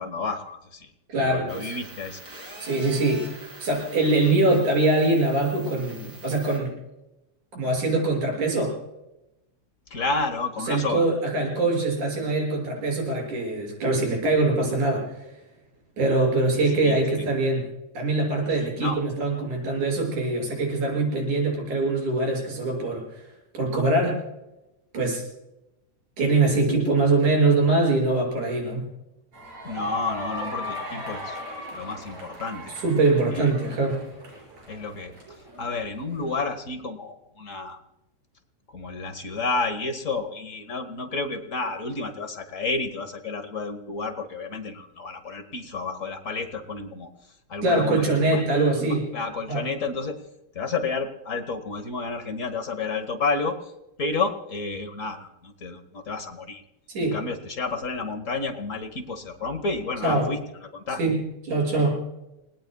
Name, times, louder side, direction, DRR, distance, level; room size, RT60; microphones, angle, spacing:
voice 1, 0.0-0.9 1.2-2.2 9.9-11.1 16.8-17.3 18.5-19.0 29.6-31.4 31.7-32.7 33.3-33.5 34.7-35.1 35.6-37.8 38.7-47.1 47.5-50.2 50.5-53.7 54.0-56.6 57.1-60.4 60.7-61.0, left 3 dB, 65° left, 6 dB, 0.7 m, -31 dB
voice 2, 1.1-1.7 2.6-6.7 7.6-8.8 10.7-15.1 16.0-17.7 17.9-23.2 23.6-24.2 24.9-25.2 26.2-28.9 32.8-34.0 47.6-49.0 49.5-49.6 56.9-57.2 60.0-60.3 61.0-61.2 61.5-62.0, right 2 dB, 85° right, 0 dB, 7.8 m, -23 dB
sound 1, 1.5-6.6, right 1 dB, 30° right, 5.6 m, -45 dB
sound 2, 29.3-36.4, left 1 dB, 65° right, 6.8 m, -38 dB
30.0 x 19.0 x 2.3 m, 0.90 s
omnidirectional pair, 3.4 m